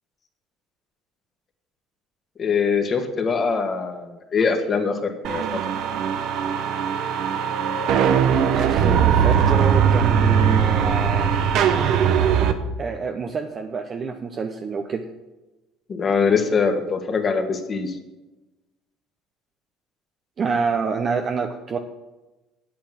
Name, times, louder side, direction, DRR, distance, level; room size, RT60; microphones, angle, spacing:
voice 1, 2.4-5.6 15.9-18.0, left 5 dB, 40° left, 4 dB, 1.9 m, -23 dB
sound 1, 5.2-12.5, right 7 dB, 65° right, 1.1 m, -20 dB
voice 2, 8.5-11.4 12.8-15.1 20.4-21.8, right 5 dB, 40° right, 4 dB, 1.0 m, -27 dB
8.6 x 8.5 x 7.6 m, 1.1 s
supercardioid pair, 75°, 0 cm